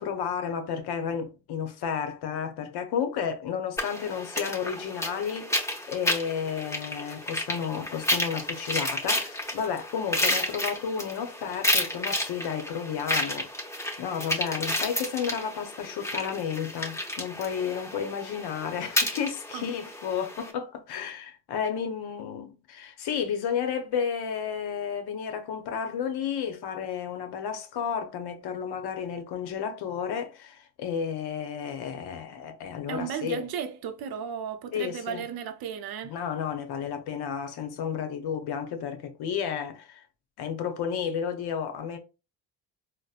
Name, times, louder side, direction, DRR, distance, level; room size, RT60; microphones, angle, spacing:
voice 1, 0.0-5.5 5.9-13.5 14.0-33.4 34.7-35.3 36.0-40.0 40.4-42.0, left 7 dB, 60° left, 0.8 m, -32 dB
sound 1, 3.8-20.5, left 1 dB, 5° left, 0.9 m, -31 dB
voice 2, 32.9-36.2, right 8 dB, 55° right, 0.6 m, -35 dB
4.0 x 2.1 x 2.4 m
supercardioid pair, 85°, 44 cm